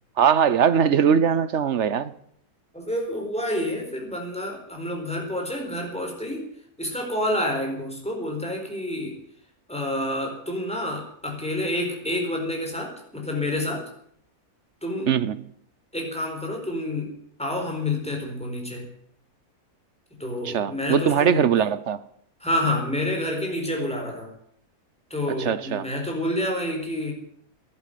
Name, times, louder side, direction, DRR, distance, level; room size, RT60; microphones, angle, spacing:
voice 1, 0.2-2.1 15.1-15.4 20.4-22.0 25.4-25.9, right 8 dB, 55° right, 1.0 m, -21 dB
voice 2, 2.7-6.5 6.8-9.2 9.7-13.8 14.8-15.1 15.9-17.1 17.4-18.9 20.2-21.5 22.4-24.3 25.1-27.1, left 1 dB, 5° left, 4.2 m, -28 dB
14.0 x 11.0 x 9.3 m
omnidirectional pair, 1.6 m